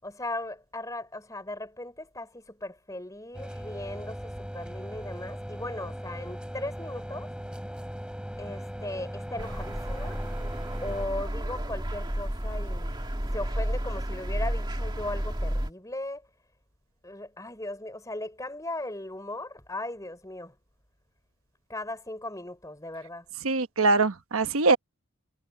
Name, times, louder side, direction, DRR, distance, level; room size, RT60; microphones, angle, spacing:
voice 1, 0.0-7.3 8.4-10.2 10.8-13.0 13.3-16.3 17.0-20.5 21.7-23.3, left 1 dB, 15° left, 4.2 m, -37 dB
sound 1, 3.3-11.1, equal, 5° right, 4.1 m, -39 dB
sound 2, 9.4-15.7, equal, 20° right, 2.1 m, -31 dB
voice 2, 23.4-24.8, right 3 dB, 75° right, 1.1 m, -23 dB
head